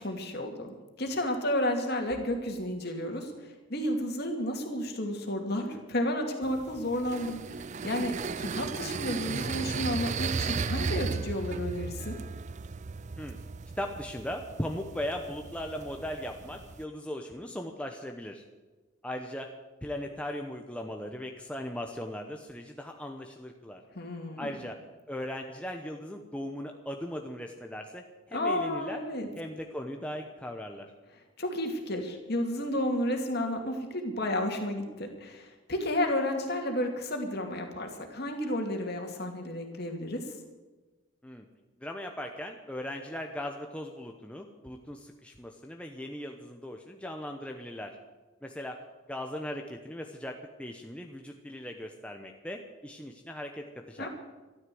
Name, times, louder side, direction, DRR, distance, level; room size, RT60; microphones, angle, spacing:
voice 1, 0.0-7.4 7.8-12.2 23.9-24.6 28.3-29.3 31.4-40.3 54.0-54.1, left 1 dB, 50° left, 3 dB, 2.5 m, -32 dB
sound 1, 6.4-16.8, right 5 dB, 35° right, 0.4 m, -36 dB
voice 2, 13.8-18.4 19.0-19.5 19.8-23.8 24.4-24.8 25.1-29.0 29.4-30.9 41.2-41.5 41.8-48.0 48.4-48.8 49.1-54.1, left 1 dB, 5° left, 3 dB, 0.9 m, -38 dB
13.0 x 13.0 x 7.8 m, 1.2 s
head